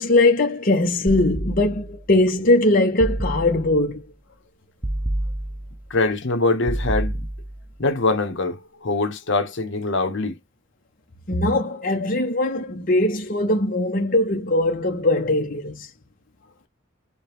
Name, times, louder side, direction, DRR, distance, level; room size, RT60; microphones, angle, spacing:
voice 1, 0.0-4.0 11.3-15.9, left 2 dB, 40° left, 0.8 m, -20 dB
sound 1, 1.1-2.1 3.0-3.9 4.8-5.9 6.7-7.7, right 1 dB, 10° right, 0.6 m, -28 dB
voice 2, 5.9-7.3 7.8-10.4, left 3 dB, 60° left, 1.0 m, -23 dB
4.9 x 2.3 x 3.2 m
head